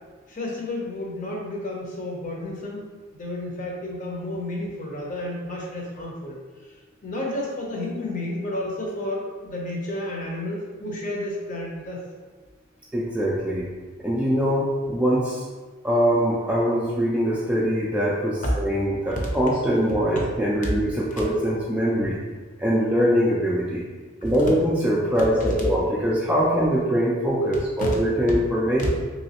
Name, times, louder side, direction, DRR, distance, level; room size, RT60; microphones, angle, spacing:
voice 1, 0.3-2.8 3.1-6.3 7.0-12.0 25.4-25.5 27.8-27.9, left 1 dB, 40° left, -2 dB, 0.7 m, -31 dB
voice 2, 12.9-13.7 14.0-15.4 15.8-22.2 22.6-23.8 24.2-28.9, equal, 5° right, -6 dB, 0.3 m, -23 dB
3.1 x 3.0 x 2.8 m, 1.4 s
head